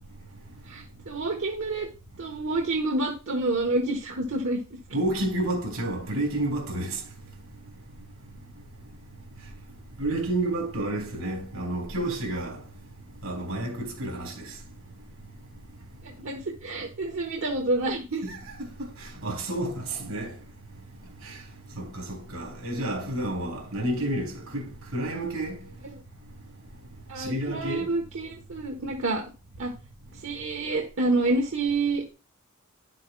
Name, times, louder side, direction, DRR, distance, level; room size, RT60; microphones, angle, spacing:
voice 1, 0.7-1.9 2.2-4.6 16.0-18.2 27.1-29.2 29.6-29.7 30.2-32.1, right 2 dB, 65° right, 1.2 m, -28 dB
voice 2, 4.9-7.0 10.0-12.6 13.2-14.3 18.2-18.4 19.0-20.3 21.2-21.3 21.7-25.6 27.2-27.9, right 1 dB, 85° right, 3.3 m, -30 dB
10.5 x 7.7 x 2.3 m
head